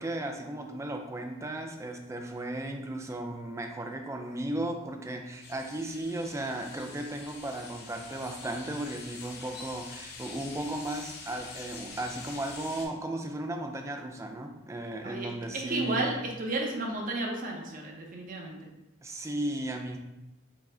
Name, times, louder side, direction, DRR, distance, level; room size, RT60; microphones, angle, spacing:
voice 1, 0.0-16.1 19.0-20.0, right 1 dB, 15° right, 4 dB, 0.3 m, -35 dB
sound 1, 5.4-12.9, left 4 dB, 55° left, 0.6 m, -45 dB
voice 2, 15.0-18.7, right 2 dB, 45° right, 0 dB, 0.7 m, -33 dB
4.7 x 2.1 x 3.7 m, 0.94 s
head